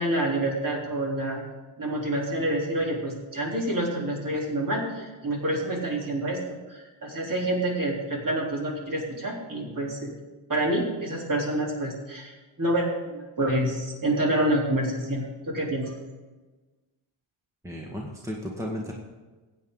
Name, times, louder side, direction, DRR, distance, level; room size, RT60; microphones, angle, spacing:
voice 1, 0.0-1.4 1.8-6.4 6.7-10.1 10.5-15.9, right 1 dB, 40° right, -2 dB, 3.6 m, -27 dB
voice 2, 17.6-18.9, equal, 5° right, -1 dB, 1.6 m, -34 dB
15.5 x 8.9 x 3.9 m, 1.2 s
cardioid pair, 90°, 50 cm